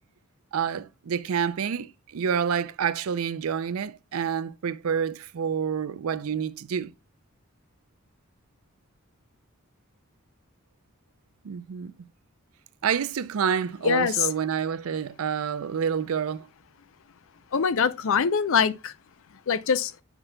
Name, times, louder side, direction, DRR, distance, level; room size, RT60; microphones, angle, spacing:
voice 1, 0.5-6.9 11.4-11.9 12.8-16.5, right 7 dB, 70° right, 0.4 m, -28 dB
voice 2, 13.8-14.3 17.5-18.9 19.5-19.9, left 6 dB, 65° left, 0.5 m, -23 dB
7.9 x 5.8 x 2.2 m
head